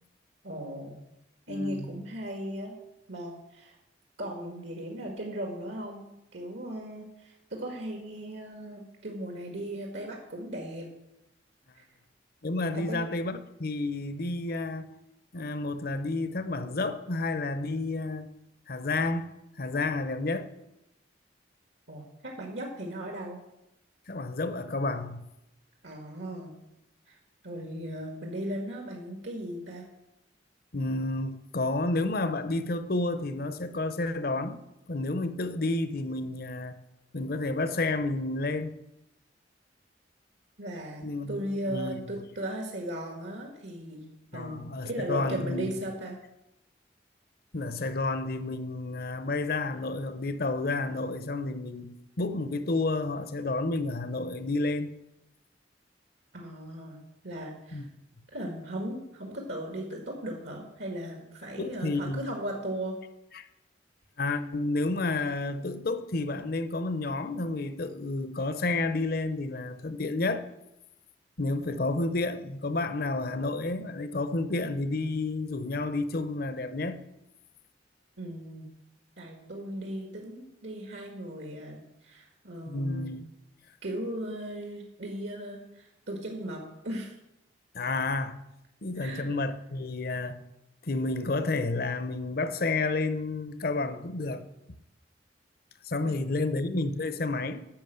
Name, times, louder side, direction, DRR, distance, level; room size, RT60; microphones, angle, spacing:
voice 1, 0.4-1.0 1.5-2.7 3.1-3.8 4.2-10.9 11.7-11.8 12.7-13.0 21.9-23.4 25.8-26.5 27.1-27.2 27.4-29.8 40.6-44.0 44.3-46.1 56.3-57.9 58.3-63.0 78.2-78.7 79.2-83.1 83.8-87.1 89.0-89.3 96.0-96.5, right 1 dB, 80° right, 1.7 m, -37 dB
voice 2, 1.5-2.0 12.4-14.9 15.3-18.3 18.7-20.5 24.1-25.2 30.7-34.6 34.9-36.8 37.1-38.7 41.0-41.4 41.7-42.0 44.3-45.7 47.5-54.9 57.7-57.9 61.6-62.2 63.3-63.5 64.2-70.5 71.4-77.0 82.7-83.2 87.7-88.4 88.8-90.4 90.8-94.4 95.8-97.7, left 2 dB, 55° left, 0.8 m, -30 dB
10.5 x 6.2 x 7.9 m
head